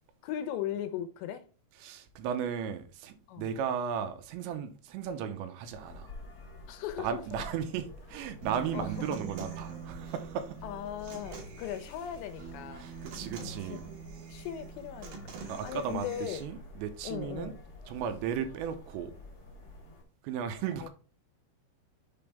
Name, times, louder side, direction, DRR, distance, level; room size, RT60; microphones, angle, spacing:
voice 1, 0.2-1.5 3.3-3.5 6.7-7.4 8.7-9.2 10.6-12.9 13.7-13.8 14.3-16.4 17.0-17.6 20.8-20.9, left 10 dB, 80° left, 2.8 m, -38 dB
voice 2, 1.8-6.1 7.0-10.7 12.7-13.8 15.5-17.5 17.9-19.1 20.2-20.9, right 8 dB, 85° right, 3.0 m, -35 dB
sound 1, 5.7-20.0, left 2 dB, 40° left, 1.4 m, -49 dB
Human voice / Acoustic guitar, 8.4-16.4, right 6 dB, 65° right, 2.9 m, -44 dB
6.8 x 5.3 x 3.4 m
omnidirectional pair, 5.2 m